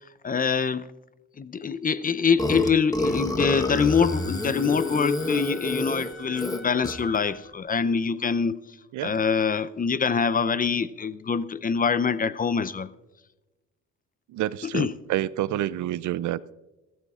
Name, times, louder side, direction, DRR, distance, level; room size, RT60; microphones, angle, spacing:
voice 1, 0.2-0.9 1.4-8.6 9.0-12.9 14.7-14.9, left 6 dB, 30° left, 0.6 m, -24 dB
Burping eructation, 2.4-7.2, left 1 dB, 10° left, 1.1 m, -28 dB
Wind instrument woodwind instrument, 3.5-7.6, left 1 dB, 55° left, 2.5 m, -47 dB
voice 2, 14.3-16.5, right 13 dB, 75° right, 0.5 m, -28 dB
21.5 x 14.0 x 2.4 m
cardioid pair, 90°, 30 cm